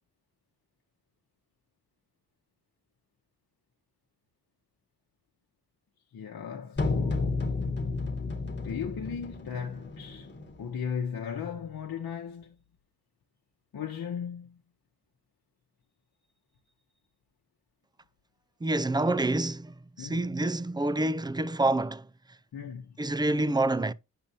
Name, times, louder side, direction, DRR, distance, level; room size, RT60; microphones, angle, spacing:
voice 1, 6.1-7.4 8.6-10.3 10.6-12.6 13.7-14.6 20.0-20.3 22.5-23.0, left 7 dB, 65° left, 1.0 m, -37 dB
sound 1, 6.8-10.8, left 3 dB, 30° left, 1.3 m, -32 dB
voice 2, 18.6-22.1 23.0-23.9, right 2 dB, 10° right, 0.4 m, -27 dB
8.6 x 5.3 x 2.8 m
cardioid pair, 55°, 37 cm